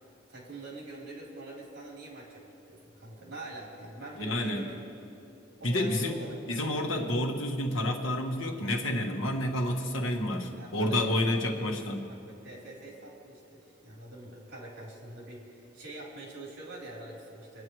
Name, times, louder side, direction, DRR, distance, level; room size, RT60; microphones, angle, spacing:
voice 1, 0.3-4.8 5.6-6.8 10.5-11.8 12.1-17.6, right 2 dB, 60° right, -4 dB, 3.6 m, -45 dB
voice 2, 4.2-4.6 5.6-6.1 6.5-12.0, left 1 dB, 75° left, 1 dB, 1.4 m, -29 dB
26.0 x 9.6 x 3.1 m, 2.7 s
head